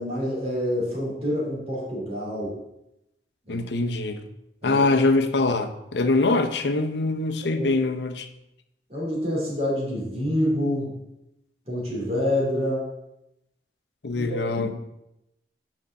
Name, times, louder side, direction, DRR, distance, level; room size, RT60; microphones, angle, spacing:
voice 1, 0.0-2.6 3.5-3.6 4.6-4.8 7.4-7.8 8.9-11.0 11.7-12.9 14.1-14.7, left 1 dB, 35° right, -4 dB, 2.7 m, -27 dB
voice 2, 3.5-4.2 4.6-8.3 14.0-14.7, left 3 dB, 80° left, 8 dB, 0.7 m, -23 dB
6.2 x 5.3 x 5.7 m, 0.87 s
head